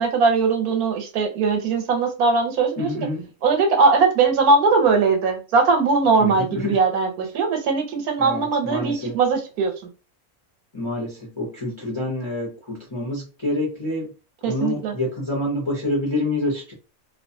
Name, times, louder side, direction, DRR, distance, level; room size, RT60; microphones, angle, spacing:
voice 1, 0.0-3.1 3.4-9.7 14.4-14.9, right 4 dB, 80° right, 4 dB, 1.2 m, -20 dB
voice 2, 2.8-3.2 6.2-6.8 8.2-9.2 10.7-14.1 14.5-16.7, left 1 dB, 30° left, -4 dB, 0.5 m, -27 dB
2.4 x 2.3 x 2.6 m, 0.33 s
omnidirectional pair, 1.5 m